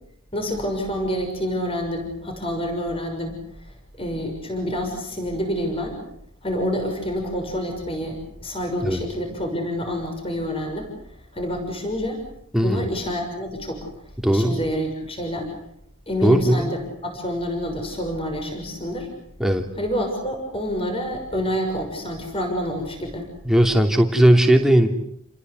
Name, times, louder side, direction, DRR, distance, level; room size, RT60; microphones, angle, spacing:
voice 1, 0.3-3.4 4.0-6.0 6.4-10.9 11.3-12.2 12.6-13.9 14.3-15.5 16.1-19.1 19.8-23.3, equal, 25° left, 3 dB, 6.4 m, -27 dB
voice 2, 12.5-12.9 14.2-14.5 16.2-16.7 19.4-19.6 23.4-24.9, right 1 dB, ahead, 3 dB, 3.0 m, -17 dB
30.0 x 21.0 x 8.2 m, 0.74 s
head